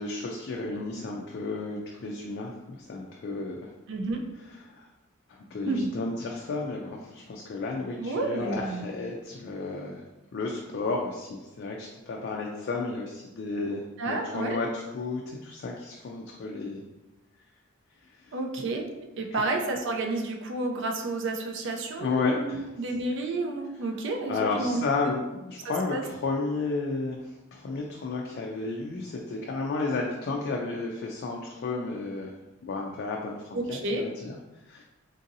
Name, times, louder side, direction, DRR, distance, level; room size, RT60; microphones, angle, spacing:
voice 1, 0.0-3.7 4.6-4.9 5.5-10.0 10.3-16.8 18.1-18.4 19.3-19.4 22.0-22.7 24.3-32.4 32.6-34.4 34.7-34.8, left 3 dB, 50° left, 0 dB, 0.3 m, -32 dB
voice 2, 3.9-4.2 5.7-5.9 8.0-8.9 14.0-14.6 18.3-18.8 19.2-24.8 25.6-26.0 33.5-34.0, right 2 dB, 60° right, 2 dB, 0.4 m, -30 dB
3.8 x 2.7 x 2.6 m, 1.0 s
head